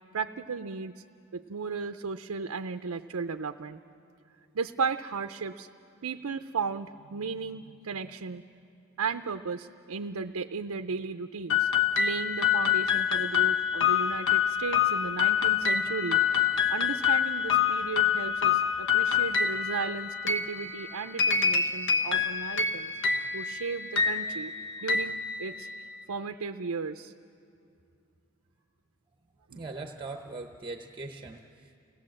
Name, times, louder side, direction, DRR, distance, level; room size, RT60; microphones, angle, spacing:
voice 1, 0.1-1.0 1.3-3.8 4.5-5.7 6.0-8.4 9.0-11.7 12.0-16.4 16.7-22.9 23.3-24.5 24.8-25.7 26.1-27.1 29.5-29.6, right 5 dB, 85° right, 7 dB, 0.6 m, -35 dB
sound 1, 11.5-25.9, left 7 dB, 60° left, 1.0 m, -26 dB
voice 2, 29.5-31.8, right 3 dB, 20° right, 4 dB, 0.8 m, -40 dB
29.5 x 18.0 x 7.6 m, 2.6 s
head